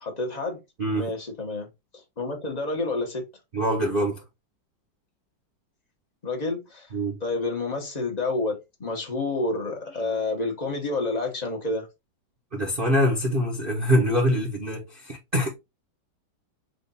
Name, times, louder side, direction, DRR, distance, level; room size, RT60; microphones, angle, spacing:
voice 1, 0.0-0.6 0.9-1.7 2.2-3.2 6.2-6.9 7.2-11.9, left 2 dB, 30° left, 0.9 m, -29 dB
voice 2, 0.8-1.1 3.5-4.2 6.9-7.2 12.5-15.5, equal, 35° right, 1.0 m, -24 dB
5.0 x 2.6 x 4.0 m
omnidirectional pair, 2.3 m